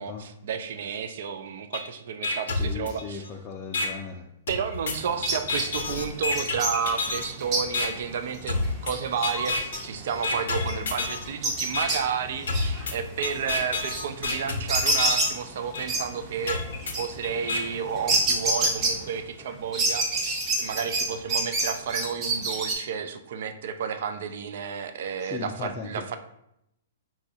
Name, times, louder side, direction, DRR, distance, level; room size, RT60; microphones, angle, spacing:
voice 1, 0.0-3.2 4.5-16.6 17.0-20.3 20.6-26.2, right 7 dB, 65° right, 9 dB, 0.3 m, -31 dB
sound 1, 1.7-1.8 2.2-3.3 3.7-3.9 4.5-7.3 7.7-7.9 8.5-8.9 9.2-9.8 10.2-11.2 11.7-11.9 12.5-15.3 15.7-15.8 16.5-17.6, left 3 dB, 75° left, 0.6 m, -29 dB
voice 2, 2.6-4.3 25.2-26.0, left 5 dB, 30° left, -1 dB, 0.4 m, -37 dB
sound 2, 4.9-19.4 19.7-22.7, right 2 dB, 30° right, 0.8 m, -29 dB
4.1 x 2.3 x 2.7 m, 0.78 s
hypercardioid pair, 125°, 0 cm